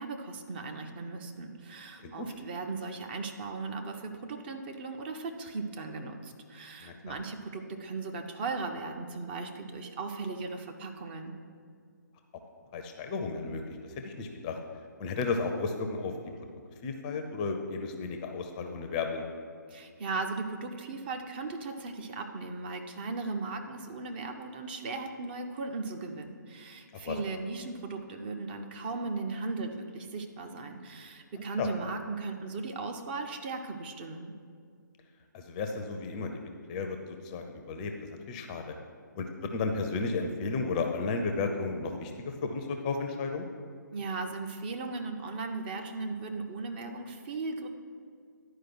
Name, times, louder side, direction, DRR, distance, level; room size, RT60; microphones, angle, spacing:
voice 1, 0.0-11.3 19.7-34.3 43.9-47.7, right 3 dB, 30° right, 5 dB, 0.7 m, -37 dB
voice 2, 6.8-7.2 12.7-14.6 15.0-16.1 16.8-19.2 26.9-27.2 31.4-31.7 35.3-36.3 36.7-38.7 39.2-43.5, left 4 dB, 20° left, 5 dB, 0.5 m, -33 dB
11.0 x 4.8 x 6.1 m, 2.1 s
figure-of-eight pair, 135°, 11 cm